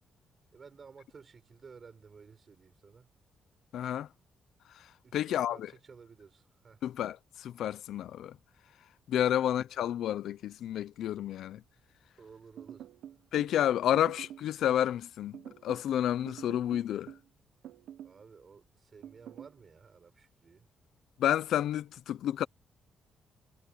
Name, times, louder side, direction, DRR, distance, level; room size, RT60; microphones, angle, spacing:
voice 1, 0.5-3.1 5.0-6.8 12.2-12.9 13.8-14.0 18.0-20.7, right 5 dB, 35° right, 4.8 m, -54 dB
voice 2, 3.7-4.1 5.1-5.7 6.8-8.3 9.1-11.6 13.3-17.1 21.2-22.4, left 11 dB, 75° left, 0.6 m, -30 dB
sound 1, 12.6-13.6 13.9-14.5 15.3-15.9 16.3-17.3 17.6-18.2 19.0-19.5, right 10 dB, 80° right, 0.9 m, -47 dB
cardioid pair, 140°, 0 cm